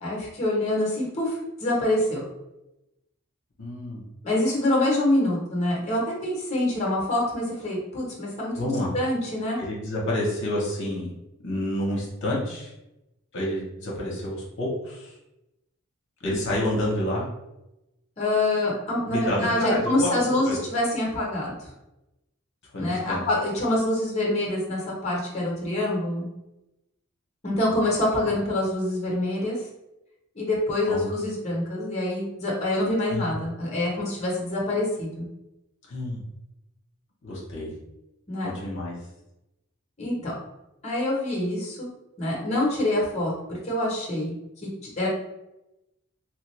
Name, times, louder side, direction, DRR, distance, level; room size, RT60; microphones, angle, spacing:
voice 1, 0.0-2.2 4.2-9.6 18.2-21.7 22.8-26.3 27.4-29.6 30.3-35.3 38.3-38.5 40.0-40.3 40.8-41.9 42.2-44.3 45.0-45.1, left 1 dB, 30° left, -4 dB, 0.9 m, -26 dB
voice 2, 3.6-4.0 8.5-8.9 9.6-11.1 11.4-12.7 13.3-15.2 16.2-17.2 19.1-20.6 22.7-23.2 28.1-28.3 30.9-31.1 33.1-33.3 35.9-36.2 37.2-37.7 38.4-39.0, left 1 dB, 60° left, -5 dB, 0.9 m, -29 dB
3.1 x 2.4 x 3.1 m, 0.93 s
head